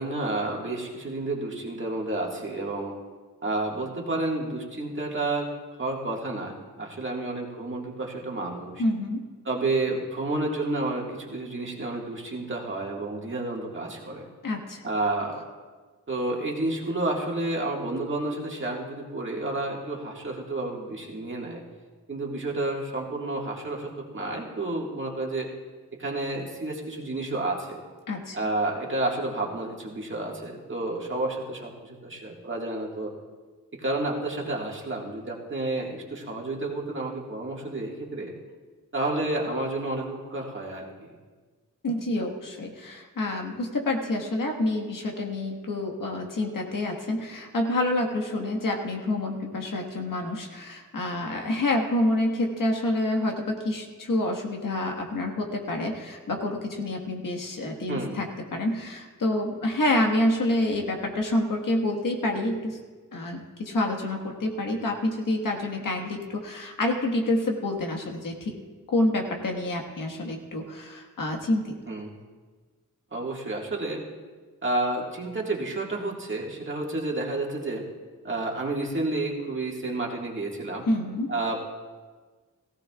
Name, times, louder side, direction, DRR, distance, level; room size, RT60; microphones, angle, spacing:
voice 1, 0.0-2.9 3.4-5.5 5.8-8.8 9.5-14.3 14.8-15.4 16.1-21.6 22.1-25.5 25.9-27.8 28.3-33.1 33.7-38.3 38.9-41.1 57.9-58.2 71.9-72.1 73.1-74.0 74.6-77.9 78.2-80.9 81.3-81.6, right 2 dB, 40° right, -2 dB, 1.9 m, -30 dB
voice 2, 8.8-9.2 14.4-14.8 28.1-28.4 41.8-62.8 63.1-68.6 68.9-71.9 80.9-81.3, left 1 dB, 85° left, 2 dB, 1.6 m, -28 dB
18.0 x 15.5 x 2.4 m, 1.4 s
wide cardioid pair, 145°, 32 cm